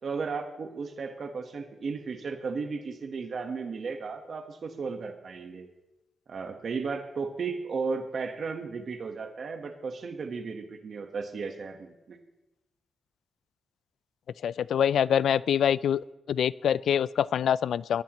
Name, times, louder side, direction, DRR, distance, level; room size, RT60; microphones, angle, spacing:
voice 1, 0.0-5.7 6.3-12.2, right 4 dB, 55° right, 4 dB, 1.3 m, -35 dB
voice 2, 14.4-18.0, left 9 dB, 80° left, 19 dB, 0.3 m, -25 dB
22.5 x 11.5 x 3.1 m, 0.97 s
cardioid pair, 110°, 0 cm